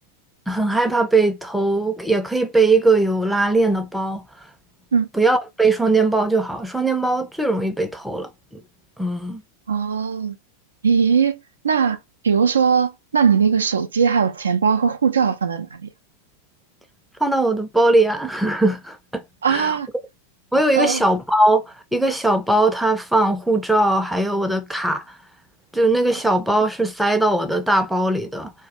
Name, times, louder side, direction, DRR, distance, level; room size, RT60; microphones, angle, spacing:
voice 1, 0.5-4.2 5.1-8.6 9.0-9.4 17.2-19.2 19.5-19.8 20.5-25.0 25.7-28.5, right 2 dB, ahead, 0.4 m, -20 dB
voice 2, 9.7-10.4 10.8-11.4 11.6-12.0 12.2-15.9 19.4-19.9 20.8-21.0, right 6 dB, 70° right, 0.3 m, -19 dB
2.2 x 2.0 x 2.7 m
figure-of-eight pair, 90°, 0 cm